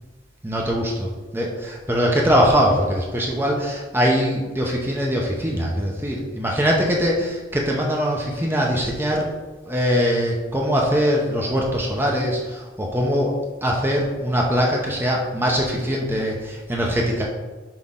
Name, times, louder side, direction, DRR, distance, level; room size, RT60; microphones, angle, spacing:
voice 1, 0.4-9.3 9.7-17.3, equal, 10° right, -1 dB, 0.7 m, -22 dB
6.0 x 5.2 x 3.7 m, 1.2 s
head